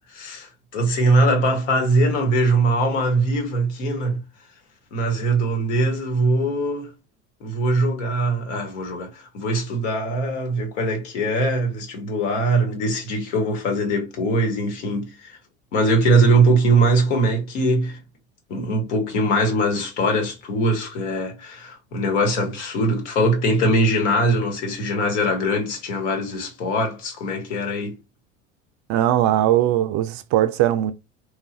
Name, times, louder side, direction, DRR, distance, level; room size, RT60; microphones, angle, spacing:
voice 1, 0.0-4.2 4.9-6.9 7.4-15.4 15.7-18.0 18.5-28.0, right 1 dB, 75° left, 1.3 m, -21 dB
voice 2, 28.9-30.9, right 12 dB, 50° right, 0.5 m, -19 dB
3.1 x 2.4 x 2.5 m
hypercardioid pair, 80°, 36 cm